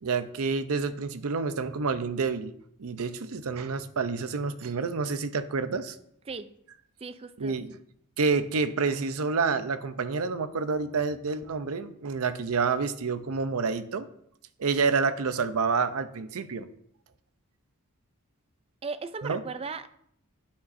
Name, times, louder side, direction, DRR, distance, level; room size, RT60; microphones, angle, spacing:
voice 1, 0.0-2.5 2.8-6.0 7.4-7.7 8.2-14.1 14.6-16.7 19.2-19.4, right 4 dB, 75° right, 12 dB, 0.6 m, -28 dB
voice 2, 7.0-7.6 18.8-19.9, right 4 dB, 25° right, 12 dB, 0.4 m, -37 dB
9.6 x 8.6 x 2.6 m, 0.71 s
head